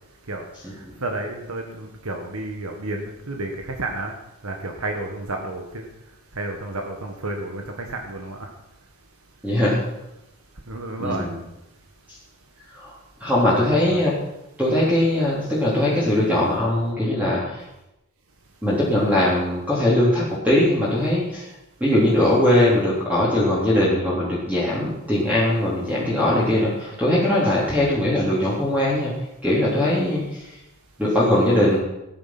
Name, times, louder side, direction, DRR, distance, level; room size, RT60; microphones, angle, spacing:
voice 1, 1.0-4.1 4.4-5.8 6.4-8.5 10.7-11.3 13.5-14.0, right 2 dB, 85° right, 2 dB, 1.7 m, -31 dB
voice 2, 9.4-9.8 11.0-11.3 12.1-12.2 12.7-14.2 14.6-17.7 18.6-21.5 21.8-29.1 29.4-30.5 31.0-31.8, left 1 dB, 5° right, -7 dB, 3.5 m, -20 dB
16.5 x 9.9 x 6.1 m, 0.90 s
head